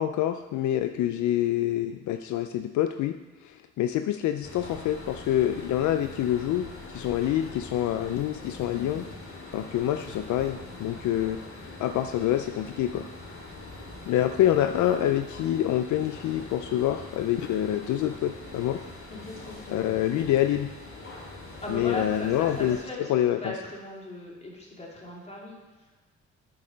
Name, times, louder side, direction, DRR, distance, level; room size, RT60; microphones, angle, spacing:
voice 1, 0.0-9.0 9.5-11.4 11.8-13.1 14.1-18.8 19.7-20.7 21.7-22.8 23.1-23.5, left 12 dB, 75° left, 9 dB, 0.5 m, -26 dB
sound 1, 4.4-22.8, left 2 dB, 45° left, 2.5 m, -43 dB
voice 2, 19.1-19.9 21.6-23.1 23.4-25.6, left 1 dB, 20° left, -3 dB, 2.8 m, -38 dB
8.5 x 6.4 x 5.1 m, 1.2 s
cardioid pair, 90°, 30 cm